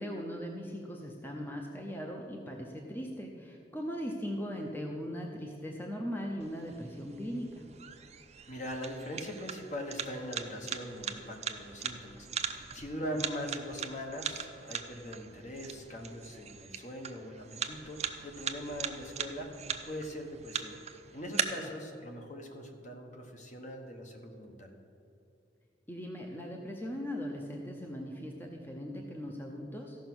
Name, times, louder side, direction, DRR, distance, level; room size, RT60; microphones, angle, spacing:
voice 1, 0.0-7.6 13.0-13.2 21.6-21.7 25.9-30.0, equal, 10° left, 1 dB, 0.7 m, -39 dB
sound 1, 6.4-21.4, right 8 dB, 40° right, 0.6 m, -40 dB
voice 2, 8.5-20.8 21.1-24.7, equal, 45° left, 3 dB, 1.2 m, -41 dB
14.5 x 5.8 x 6.1 m, 2.5 s
head